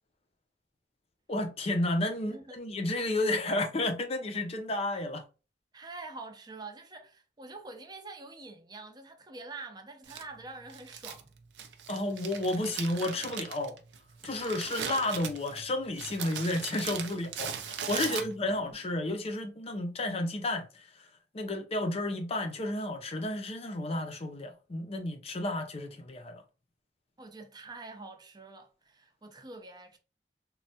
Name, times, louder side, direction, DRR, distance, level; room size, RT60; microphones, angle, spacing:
voice 1, 1.3-5.2 11.9-13.8 14.2-20.9 21.3-26.4, left 1 dB, 35° left, 0.5 m, -32 dB
voice 2, 2.3-2.6 5.7-11.4 18.0-18.2 18.5-18.8 27.2-30.0, right 3 dB, 25° right, 0.5 m, -46 dB
Crumpling crinkling, 10.0-18.7, right 7 dB, 75° right, 0.5 m, -40 dB
3.2 x 2.2 x 2.7 m
head